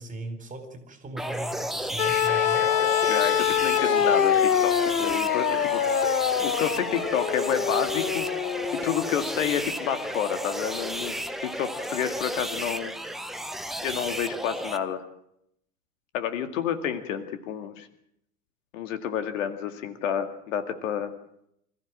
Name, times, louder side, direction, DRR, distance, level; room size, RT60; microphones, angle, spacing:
voice 1, 0.0-2.7, right 2 dB, 15° right, 8 dB, 4.3 m, -38 dB
sound 1, 1.2-14.8, right 1 dB, ahead, 1.1 m, -33 dB
sound 2, 2.0-10.1 11.3-11.4, left 8 dB, 85° left, 0.9 m, -25 dB
voice 2, 3.1-6.0 6.4-8.3 8.7-11.1 11.4-12.9 13.8-15.0 16.1-17.9 18.7-21.1, left 8 dB, 55° left, 8 dB, 2.3 m, -29 dB
26.0 x 15.0 x 7.6 m, 0.75 s
figure-of-eight pair, 100°, 47 cm